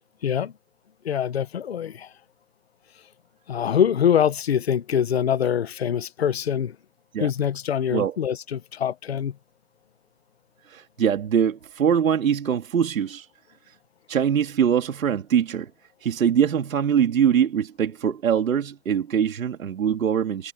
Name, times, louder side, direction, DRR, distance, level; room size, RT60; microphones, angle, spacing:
voice 1, 0.2-0.5 1.0-2.1 3.5-6.8 7.2-9.4, left 8 dB, 40° left, 0.9 m, -24 dB
voice 2, 10.7-13.3 13.7-13.8 14.1-15.7 16.0-20.5, right 8 dB, 60° right, 2.4 m, -23 dB
hypercardioid pair, 180°, 46 cm